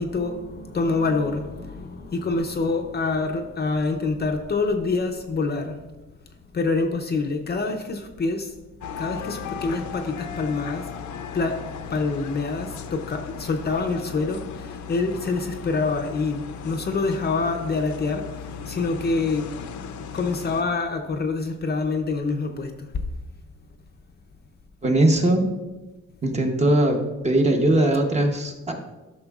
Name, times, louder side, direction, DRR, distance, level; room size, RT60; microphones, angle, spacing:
voice 1, 0.0-5.8 6.5-8.5 9.0-10.9 11.3-11.6 11.9-19.5 20.1-22.9, left 3 dB, 35° left, 4 dB, 0.5 m, -26 dB
sound 1, 8.8-20.6, left 6 dB, 75° left, 0.6 m, -36 dB
voice 2, 24.8-25.5 26.2-27.0 27.2-28.7, right 1 dB, 25° right, 3 dB, 0.8 m, -20 dB
12.5 x 6.2 x 2.4 m, 1.1 s
wide cardioid pair, 175°, 30 cm